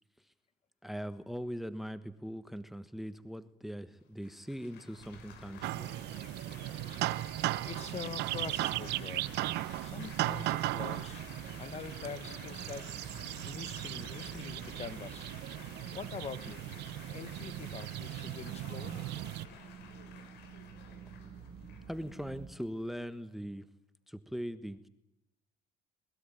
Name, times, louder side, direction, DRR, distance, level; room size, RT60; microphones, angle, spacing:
voice 1, 0.8-5.9 21.9-23.7 24.1-24.9, equal, ahead, 13 dB, 1.3 m, -41 dB
Laughter / Applause / Chatter, 4.2-23.3, left 6 dB, 85° left, 5.7 m, -53 dB
sound 1, 5.0-22.5, right 7 dB, 70° right, 3.0 m, -52 dB
sound 2, 5.6-19.5, right 17 dB, 85° right, 0.9 m, -37 dB
voice 2, 7.6-9.3 9.8-11.2 11.6-12.9 13.4-15.3 15.9-16.6 17.1-19.0, left 6 dB, 40° left, 14 dB, 1.8 m, -44 dB
22.5 x 21.5 x 9.2 m, 0.90 s
cardioid pair, 110°, 17 cm